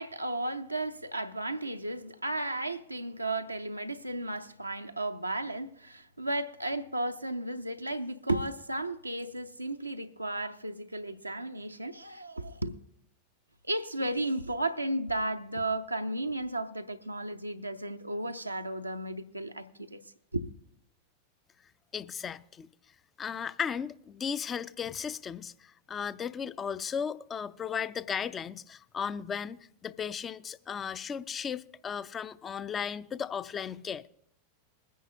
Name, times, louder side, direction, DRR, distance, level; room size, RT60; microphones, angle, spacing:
voice 1, 0.0-12.8 13.6-20.0 20.3-20.5, right 1 dB, 85° right, 0.5 m, -34 dB
voice 2, 21.9-22.7 23.2-34.1, left 7 dB, 20° left, 0.4 m, -36 dB
21.5 x 10.0 x 2.7 m
figure-of-eight pair, 90°, 0 cm